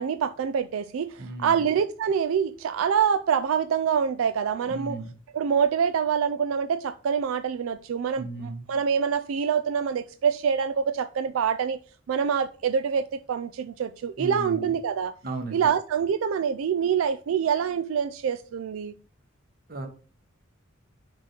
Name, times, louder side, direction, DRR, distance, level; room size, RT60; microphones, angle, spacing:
voice 1, 0.0-5.0 5.3-11.8 12.1-15.1 15.5-18.9, right 7 dB, 80° right, 0.3 m, -26 dB
voice 2, 1.2-1.6 4.6-5.1 8.2-8.7 14.2-14.7 15.2-15.7 19.7-19.9, right 3 dB, 50° right, 1.1 m, -35 dB
6.1 x 3.0 x 5.6 m
head